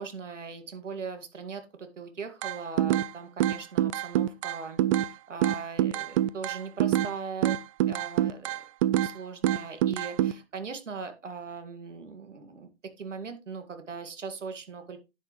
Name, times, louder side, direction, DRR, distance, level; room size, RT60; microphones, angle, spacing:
voice 1, 0.0-8.6 9.0-12.7 13.0-15.0, right 5 dB, 80° right, 8 dB, 2.2 m, -40 dB
sound 1, 2.4-3.1 3.4-5.1 5.4-7.1 7.4-9.1 9.4-10.3, right 13 dB, 30° right, 0.4 m, -25 dB
10.5 x 7.9 x 3.1 m, 0.27 s
figure-of-eight pair, 115°, 36 cm